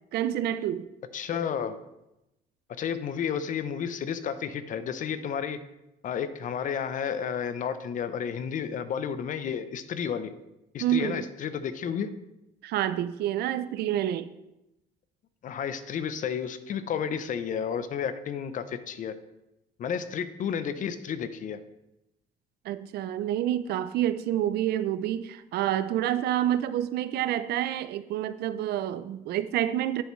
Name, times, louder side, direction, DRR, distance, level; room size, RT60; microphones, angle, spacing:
voice 1, 0.1-0.9 10.8-11.3 12.6-14.3 22.6-30.0, right 11 dB, 70° right, 0.5 m, -28 dB
voice 2, 1.1-1.7 2.8-5.6 6.0-10.3 10.7-12.1 15.4-19.1 19.8-21.6, left 7 dB, 50° left, 0.7 m, -31 dB
11.0 x 6.8 x 3.2 m
cardioid pair, 110°, 17 cm